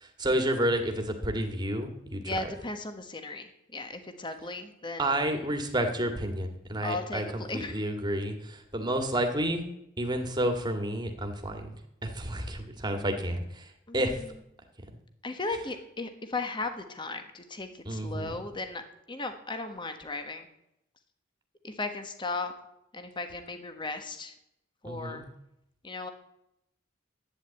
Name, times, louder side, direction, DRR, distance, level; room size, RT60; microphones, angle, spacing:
voice 1, 0.0-2.4 5.0-9.6 10.0-11.7 12.0-13.7 13.9-14.2 17.9-18.3 24.8-25.2, right 1 dB, 20° right, 5 dB, 1.9 m, -30 dB
voice 2, 2.2-5.5 6.8-7.8 13.9-14.3 15.2-18.8 19.1-20.5 21.6-22.5 22.9-24.3 24.8-25.2 25.8-26.1, left 3 dB, 25° left, 7 dB, 1.3 m, -36 dB
12.0 x 9.8 x 8.3 m, 0.81 s
head